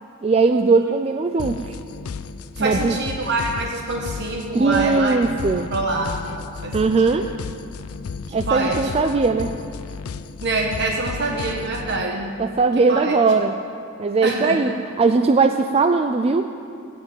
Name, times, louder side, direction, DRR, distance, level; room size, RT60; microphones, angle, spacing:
voice 1, 0.0-1.8 2.6-3.0 4.5-5.7 6.7-7.3 8.3-9.5 12.4-13.5 14.0-16.5, right 4 dB, 30° right, 7 dB, 0.3 m, -19 dB
sound 1, 1.4-12.1, left 5 dB, 85° left, 0.4 m, -33 dB
voice 2, 2.6-5.2 5.7-7.3 8.3-8.9 10.4-12.3 12.9-13.2 14.2-14.7, right 2 dB, 55° right, 1 dB, 1.2 m, -25 dB
16.0 x 6.0 x 8.9 m, 2.6 s
head